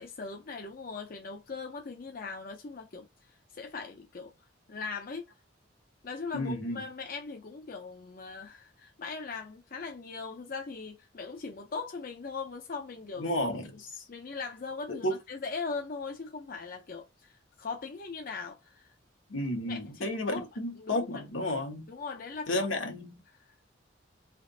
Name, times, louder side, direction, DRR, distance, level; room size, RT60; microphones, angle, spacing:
voice 1, 0.0-4.3 4.7-5.3 6.0-13.4 14.1-18.9 19.7-20.5 20.8-21.1 21.9-22.6 23.4-23.5, left 4 dB, 45° left, 0.5 m, -40 dB
voice 2, 6.3-6.8 13.2-14.0 14.9-15.2 19.3-21.9 22.5-23.2, left 1 dB, 80° left, 1.3 m, -32 dB
3.5 x 2.9 x 3.8 m
head